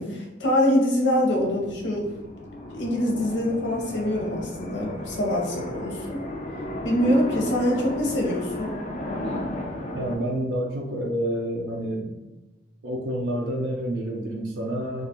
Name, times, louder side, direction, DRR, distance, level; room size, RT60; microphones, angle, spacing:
voice 1, 0.0-2.0 2.7-6.2 6.8-8.7, left 1 dB, 85° left, -1 dB, 0.7 m, -24 dB
sound 1, 1.3-10.2, left 1 dB, 40° left, 0.3 m, -34 dB
voice 2, 9.9-12.2 12.8-15.1, right 1 dB, 85° right, -1 dB, 0.4 m, -28 dB
2.3 x 2.2 x 2.8 m, 1.1 s
head